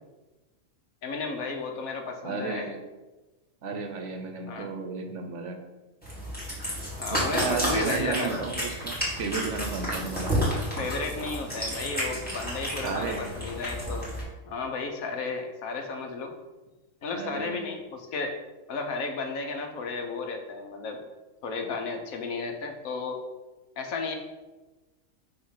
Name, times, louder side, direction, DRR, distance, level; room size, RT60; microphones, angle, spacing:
voice 1, 1.0-2.7 4.5-4.7 7.0-8.4 10.8-14.1 14.4-16.3 17.0-18.3 18.7-21.0 21.4-23.2 23.8-24.2, left 4 dB, 90° left, 4 dB, 1.3 m, -33 dB
voice 2, 2.2-2.8 3.6-5.6 7.1-10.3 12.8-13.2 17.1-17.7, right 5 dB, 65° right, 4 dB, 1.0 m, -33 dB
Cat, 6.0-14.2, equal, 5° left, 1.9 m, -31 dB
5.9 x 3.1 x 5.7 m, 1.1 s
omnidirectional pair, 1.4 m